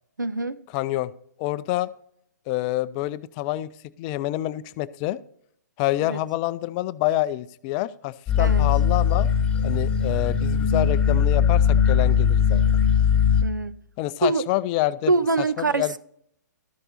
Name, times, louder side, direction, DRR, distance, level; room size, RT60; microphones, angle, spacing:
voice 1, 0.2-0.6 6.0-6.2 8.4-8.6 13.4-13.7 14.2-14.4 15.1-16.0, right 3 dB, 90° right, 0.6 m, -24 dB
voice 2, 0.7-1.1 1.4-1.9 2.5-3.7 4.0-5.2 5.8-9.3 9.6-12.6 14.0-15.1 15.6-16.0, left 16 dB, 30° left, 0.4 m, -27 dB
sound 1, 8.3-13.4, left 7 dB, 10° left, 1.7 m, -20 dB
12.5 x 6.6 x 4.1 m
figure-of-eight pair, 125°, 10 cm